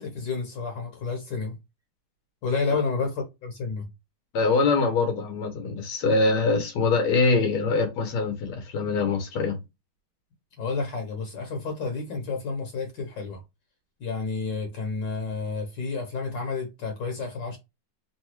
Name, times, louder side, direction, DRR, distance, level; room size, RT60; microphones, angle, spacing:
voice 1, 0.0-1.6 2.4-3.9 10.6-13.4 14.0-17.6, left 4 dB, 65° left, 1.6 m, -30 dB
voice 2, 4.3-9.6, left 3 dB, 90° left, 1.8 m, -23 dB
3.9 x 2.3 x 2.9 m
omnidirectional pair, 2.3 m